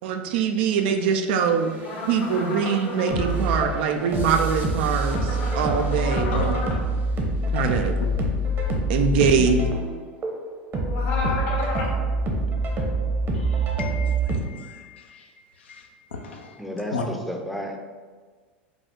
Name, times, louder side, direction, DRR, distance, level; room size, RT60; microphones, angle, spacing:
voice 1, 0.0-1.7 2.1-6.5 7.5-7.9 8.9-9.7, right 6 dB, 65° right, 6 dB, 0.5 m, -23 dB
sound 1, 1.7-14.4, right 1 dB, 35° right, 0.9 m, -26 dB
sound 2, 1.8-3.3 5.0-6.8 10.9-12.0, left 2 dB, 65° left, 1.0 m, -32 dB
voice 2, 9.3-9.8 16.6-17.8, equal, ahead, 1 dB, 0.6 m, -33 dB
voice 3, 13.3-15.3 15.7-15.8 16.1-16.6 16.9-17.0, left 5 dB, 85° left, 2 dB, 0.6 m, -35 dB
5.0 x 2.4 x 3.6 m, 1.5 s
hypercardioid pair, 90°, 6 cm